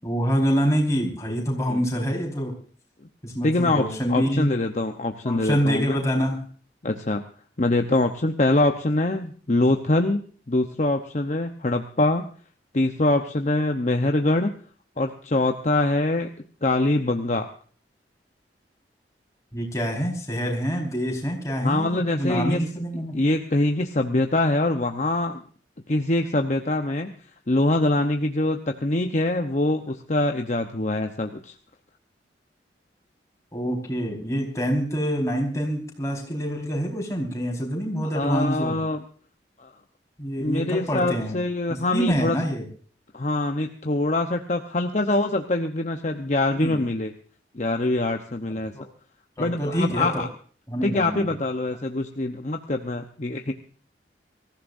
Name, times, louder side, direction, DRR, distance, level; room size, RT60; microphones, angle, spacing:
voice 1, 0.0-2.5 3.2-4.5 5.2-6.4 19.5-23.1 33.5-38.8 40.2-41.3 41.7-42.6 46.6-46.8 48.7-48.8 49.4-50.2 50.7-51.3, equal, 20° left, -1 dB, 4.8 m, -26 dB
voice 2, 3.4-3.8 4.1-5.9 6.8-7.2 7.6-10.2 10.5-12.2 12.7-14.5 15.0-16.3 16.6-17.5 21.6-22.6 23.1-25.4 25.9-27.1 27.5-31.5 38.1-39.0 39.6-39.7 40.4-42.4 43.1-47.1 47.5-48.7 49.4-50.3 50.8-53.5, left 2 dB, 40° left, 5 dB, 0.9 m, -24 dB
24.5 x 15.0 x 2.7 m, 0.43 s
head